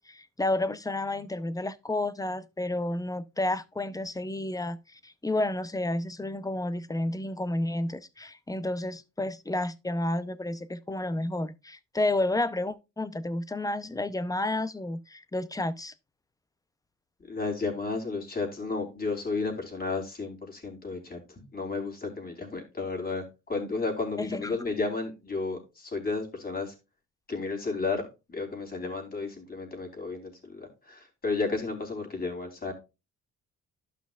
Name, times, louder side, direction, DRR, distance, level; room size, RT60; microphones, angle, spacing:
voice 1, 0.0-15.9 24.2-24.6, left 2 dB, 10° left, 0.7 m, -31 dB
voice 2, 17.3-21.2 21.5-26.7 27.3-32.7, left 3 dB, 30° left, 3.5 m, -32 dB
12.0 x 5.8 x 2.4 m
cardioid pair, 90°, 30 cm